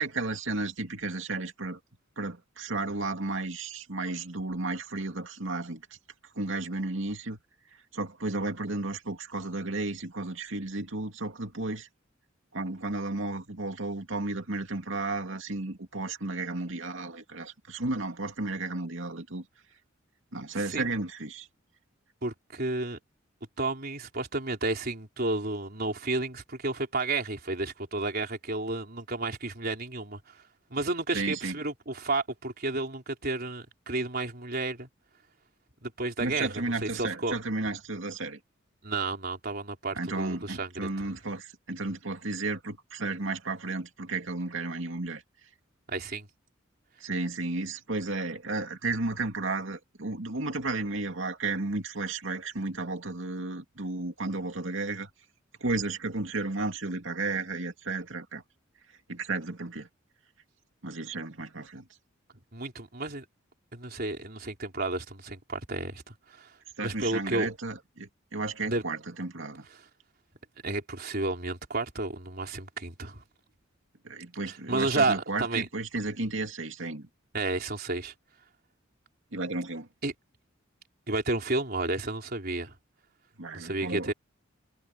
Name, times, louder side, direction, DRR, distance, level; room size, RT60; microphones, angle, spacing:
voice 1, 0.0-1.8 2.2-5.8 6.3-7.4 7.9-11.9 12.5-19.5 20.3-21.5 31.1-31.6 36.2-38.4 39.9-45.2 47.0-55.1 55.6-58.4 59.1-59.9 60.8-61.8 66.8-69.7 74.0-77.1 79.3-79.9 83.4-84.1, right 2 dB, 70° right, 2.6 m, -33 dB
voice 2, 20.5-20.9 22.2-23.0 23.6-30.2 30.7-34.9 35.8-37.4 38.8-40.7 41.0-41.1 45.9-46.3 62.5-63.2 63.7-66.5 66.8-67.5 68.6-68.8 69.8-69.9 70.6-73.2 74.5-75.7 77.3-78.1 80.0-80.1 81.1-82.8 83.5-84.1, right 2 dB, 50° right, 4.2 m, -31 dB
head